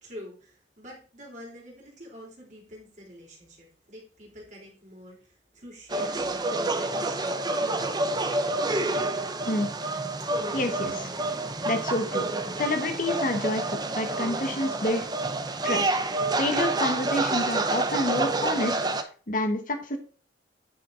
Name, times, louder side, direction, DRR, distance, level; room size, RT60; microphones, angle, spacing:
voice 1, 0.0-8.2 8.9-9.1, equal, 45° right, -2 dB, 3.5 m, -46 dB
sound 1, 5.9-19.0, right 2 dB, 25° right, 0.7 m, -28 dB
voice 2, 10.5-11.1 11.7-12.3 12.6-13.6 13.9-15.0 15.6-16.0 16.4-18.8 19.3-20.0, left 1 dB, 50° left, 6 dB, 1.3 m, -28 dB
9.4 x 5.6 x 4.0 m, 0.40 s
head